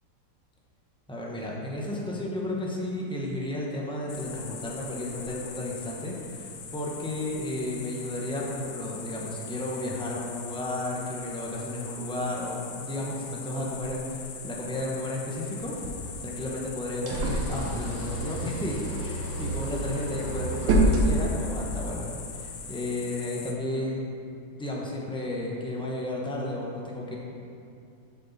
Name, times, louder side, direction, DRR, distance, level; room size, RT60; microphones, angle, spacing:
voice 1, 1.1-15.8 16.2-19.1 19.4-24.0 24.6-27.2, left 1 dB, 5° left, -3 dB, 0.5 m, -33 dB
sound 1, 4.1-23.5, left 6 dB, 70° left, 1.2 m, -42 dB
sound 2, 15.6-21.8, right 1 dB, 90° right, 1.7 m, -28 dB
7.9 x 6.3 x 4.1 m, 2.6 s
omnidirectional pair, 2.0 m